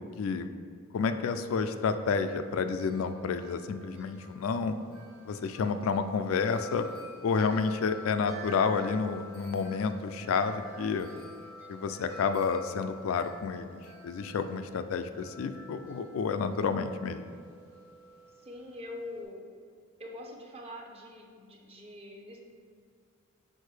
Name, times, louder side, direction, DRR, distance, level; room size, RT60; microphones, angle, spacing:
voice 1, 0.9-4.8 5.3-6.9 7.2-11.1 11.7-17.2, left 5 dB, 75° left, 9 dB, 0.3 m, -30 dB
Wind chime, 1.3-19.2, left 1 dB, 80° right, 1.3 m, -50 dB
voice 2, 18.3-19.5 20.0-22.4, left 1 dB, 25° right, 0 dB, 0.7 m, -44 dB
6.4 x 4.6 x 3.3 m, 2.2 s
head